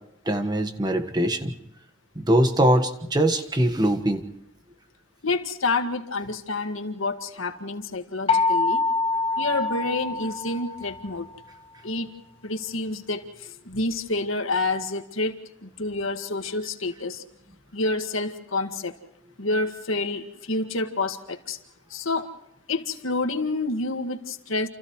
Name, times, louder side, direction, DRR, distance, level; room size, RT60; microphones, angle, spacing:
voice 1, 0.3-1.5 2.1-4.2, right 1 dB, 20° right, 6 dB, 1.5 m, -22 dB
voice 2, 5.2-8.8 9.4-11.3 11.8-12.1 12.4-17.2 17.7-19.0 19.4-21.6 21.9-22.3 22.7-24.7, left 2 dB, 80° left, 6 dB, 1.9 m, -28 dB
sound 1, 8.3-11.1, left 3 dB, 30° left, 0.8 m, -25 dB
29.0 x 29.0 x 3.2 m, 0.79 s
head